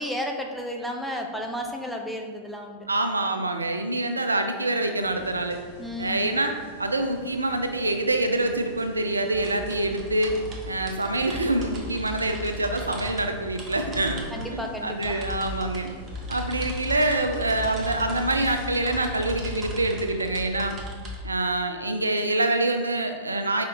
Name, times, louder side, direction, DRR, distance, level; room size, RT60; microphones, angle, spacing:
voice 1, 0.0-2.9 5.8-6.3 14.3-15.2, equal, ahead, 1 dB, 0.5 m, -32 dB
voice 2, 2.9-5.6 6.0-15.9 16.3-20.8 21.2-23.6, right 2 dB, 80° right, 6 dB, 0.3 m, -26 dB
sound 1, 5.0-18.6, left 1 dB, 55° left, 1.5 m, -46 dB
sound 2, 9.3-21.2, equal, 30° right, 0.8 m, -36 dB
5.0 x 4.2 x 2.5 m, 1.5 s
figure-of-eight pair, 90°, 0 cm